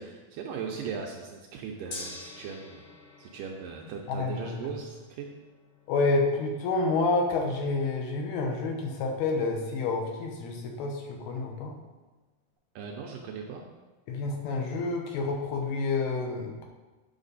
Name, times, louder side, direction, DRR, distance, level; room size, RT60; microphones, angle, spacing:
voice 1, 0.0-2.8 3.2-5.3 12.8-13.6, right 6 dB, 80° right, 1 dB, 2.0 m, -38 dB
Gong, 1.9-12.1, left 3 dB, 65° left, 2.3 m, -50 dB
voice 2, 4.1-4.7 5.9-11.7 14.1-16.7, left 3 dB, 80° left, 2 dB, 2.9 m, -29 dB
8.9 x 6.0 x 4.0 m, 1.2 s
omnidirectional pair, 4.4 m